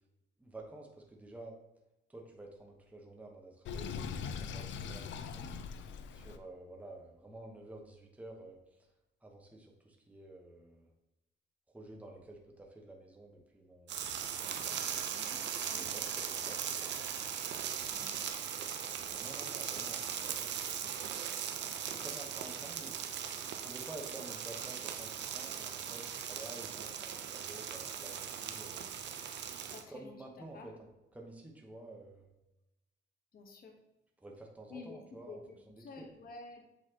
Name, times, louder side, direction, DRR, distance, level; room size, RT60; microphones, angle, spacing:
voice 1, 0.4-1.6 2.1-5.5 6.1-8.9 9.2-10.9 11.7-14.8 15.6-17.0 19.1-21.1 21.9-23.0 23.6-28.8 29.9-32.3 34.2-35.4 35.7-36.1, right 2 dB, 5° right, 0 dB, 1.0 m, -51 dB
Sink (filling or washing), 3.6-6.4, left 6 dB, 70° left, 0.5 m, -41 dB
sound 1, 13.9-29.8, right 8 dB, 65° right, 0.6 m, -39 dB
voice 2, 29.7-30.7 33.3-33.7 34.7-36.6, left 3 dB, 50° left, 2 dB, 1.1 m, -50 dB
7.8 x 4.1 x 2.9 m, 0.95 s
cardioid pair, 90°, 20 cm